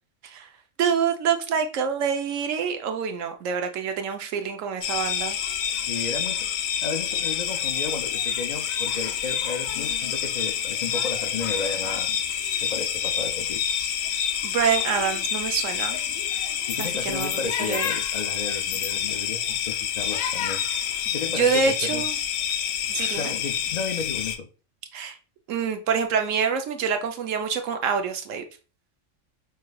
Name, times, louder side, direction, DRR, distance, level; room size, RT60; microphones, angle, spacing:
voice 1, 0.8-5.4 14.4-16.0 16.8-17.3 17.7-17.8 21.1-22.1 22.9-23.3 24.9-25.2 25.5-28.4, right 6 dB, 80° right, 1.0 m, -26 dB
sound 1, 4.8-24.4, left 9 dB, 90° left, 1.0 m, -28 dB
voice 2, 5.9-13.6 16.7-20.6 21.1-22.0 23.2-24.5, left 4 dB, 75° left, 0.4 m, -34 dB
5.7 x 3.2 x 2.2 m
omnidirectional pair, 1.3 m